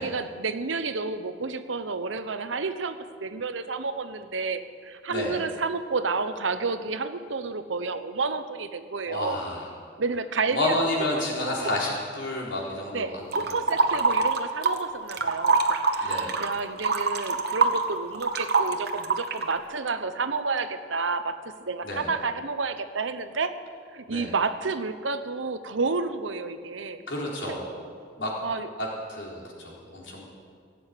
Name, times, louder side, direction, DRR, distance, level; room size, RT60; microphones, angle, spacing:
voice 1, 0.0-9.4 10.0-11.2 11.6-11.7 12.9-15.6 15.9-23.5 23.9-27.0 27.5-27.6 28.4-28.7, right 4 dB, 90° right, 10 dB, 0.9 m, -30 dB
voice 2, 9.1-9.6 10.5-13.6 16.0-16.3 21.8-22.1 24.1-24.3 27.1-27.7 28.2-28.3 28.8-30.3, left 1 dB, 75° left, -3 dB, 3.7 m, -30 dB
sound 1, 13.3-14.8 15.1-19.5, right 4 dB, 55° right, 1.1 m, -24 dB
17.0 x 7.9 x 9.1 m, 2.1 s
head